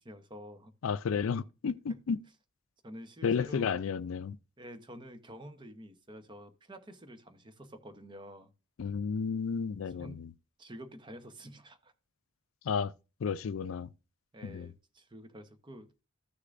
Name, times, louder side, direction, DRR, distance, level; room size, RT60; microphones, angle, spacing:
voice 1, 0.0-0.7 2.8-3.8 4.6-8.5 9.6-9.7 10.0-10.3 10.6-11.9 14.3-16.0, equal, 20° right, 0.9 m, -49 dB
voice 2, 0.8-2.2 3.2-4.4 8.8-10.3 12.6-12.9 13.2-13.9 14.4-14.7, left 6 dB, 70° left, 0.4 m, -32 dB
14.0 x 6.6 x 2.5 m
head